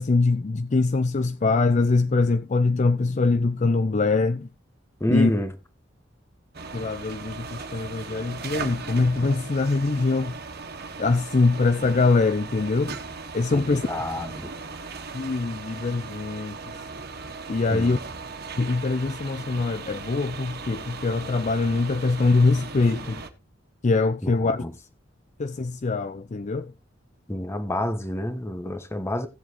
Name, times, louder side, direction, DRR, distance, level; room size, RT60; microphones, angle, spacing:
voice 1, 0.0-4.5 5.1-5.3 6.7-10.3 11.0-12.9 13.3-13.8 15.1-16.6 17.5-18.0 18.6-23.2 23.8-24.6 25.4-26.7, left 3 dB, 40° left, 0.5 m, -23 dB
voice 2, 5.0-5.5 13.5-14.5 17.7-18.0 24.2-24.7 27.3-29.3, left 1 dB, 15° left, 1.2 m, -28 dB
sound 1, 6.5-23.3, right 4 dB, 55° right, 1.5 m, -38 dB
16.5 x 7.5 x 3.1 m
head